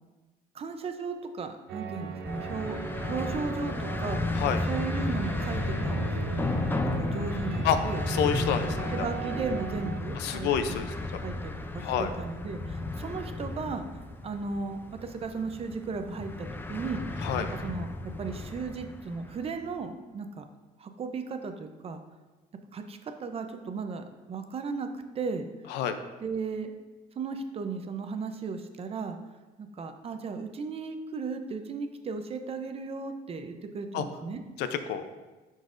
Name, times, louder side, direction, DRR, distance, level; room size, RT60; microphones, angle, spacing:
voice 1, 0.5-2.8 3.0-6.5 6.8-8.0 8.9-13.9 14.2-17.9 18.2-20.4 20.8-22.0 22.7-24.9 25.1-25.5 26.2-26.7 27.2-29.2 29.6-34.4, right 4 dB, 35° right, 7 dB, 0.6 m, -36 dB
sound 1, 1.7-10.0, right 7 dB, 75° right, 0.7 m, -39 dB
sound 2, 2.2-19.5, left 2 dB, 10° left, 0.4 m, -33 dB
voice 2, 8.1-8.9 10.2-10.9 11.8-12.1 17.2-17.5 25.7-26.0 33.9-34.0 34.6-35.0, left 8 dB, 85° left, 9 dB, 0.5 m, -28 dB
10.5 x 3.9 x 2.5 m, 1.2 s
cardioid pair, 110°, 17 cm